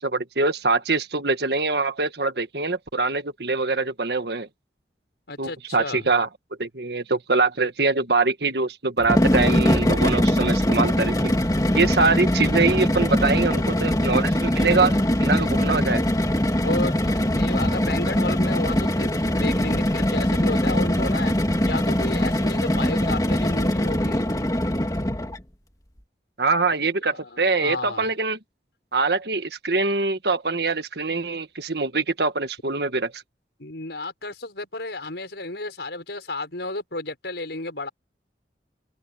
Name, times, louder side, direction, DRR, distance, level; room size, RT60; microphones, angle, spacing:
voice 1, 0.0-4.5 5.4-6.3 6.6-11.3 11.7-16.1 26.4-28.4 28.9-33.2, right 3 dB, 65° right, 1.6 m, -24 dB
voice 2, 5.3-6.1 16.6-21.3 21.7-24.3 26.9-28.1 33.6-37.9, left 2 dB, 75° left, 6.0 m, -32 dB
sound 1, 9.0-25.4, equal, 20° left, 2.3 m, -22 dB
head